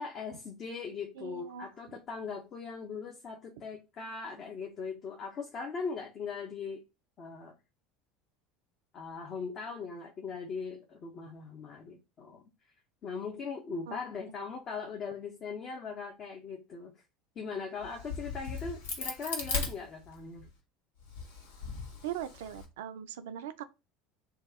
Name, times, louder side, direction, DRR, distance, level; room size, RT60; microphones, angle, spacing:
voice 1, 0.0-6.8 7.2-7.6 8.9-12.4 13.0-17.0 17.4-20.5, left 5 dB, 45° left, 0.6 m, -40 dB
voice 2, 1.2-1.7 13.9-14.0 22.0-23.6, right 10 dB, 70° right, 0.4 m, -40 dB
Crack, 17.8-20.5 21.0-22.7, left 4 dB, 75° left, 0.9 m, -38 dB
2.8 x 2.2 x 3.6 m
hypercardioid pair, 75°, 0 cm